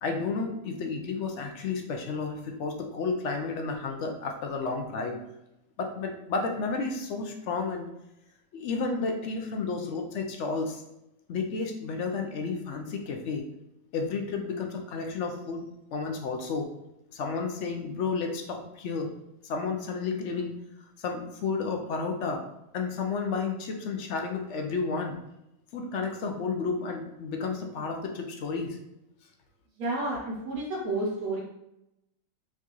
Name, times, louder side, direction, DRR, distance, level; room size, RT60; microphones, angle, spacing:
voice 1, 0.0-5.2 5.8-7.9 8.5-10.8 11.3-13.5 13.9-16.7 17.1-19.1 19.4-20.5 21.0-22.4 22.7-25.2 25.7-28.8, left 4 dB, 65° left, 3 dB, 0.8 m, -32 dB
voice 2, 29.8-31.4, right 2 dB, 90° right, -5 dB, 1.3 m, -30 dB
4.5 x 2.4 x 2.8 m, 0.85 s
omnidirectional pair, 1.5 m